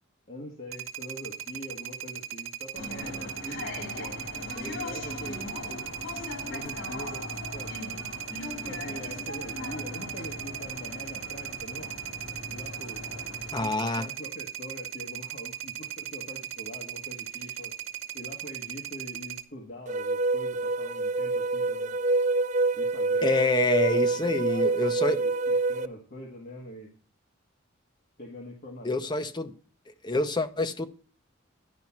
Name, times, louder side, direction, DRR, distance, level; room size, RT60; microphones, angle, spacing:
voice 1, 0.3-4.2 4.5-5.9 6.5-7.7 8.7-11.9 12.5-13.0 13.6-17.7 18.1-21.9 22.7-23.6 23.9-26.9 28.2-29.1, equal, 45° left, 1.6 m, -43 dB
sound 1, 0.7-19.4, right 11 dB, 80° right, 1.1 m, -38 dB
sound 2, 2.7-13.7, left 2 dB, 80° left, 2.9 m, -39 dB
voice 2, 13.5-14.1 23.2-25.2 28.8-29.5 29.9-30.9, left 3 dB, 20° left, 0.7 m, -27 dB
sound 3, 19.9-25.9, right 3 dB, 35° right, 0.3 m, -26 dB
11.0 x 5.3 x 5.8 m
head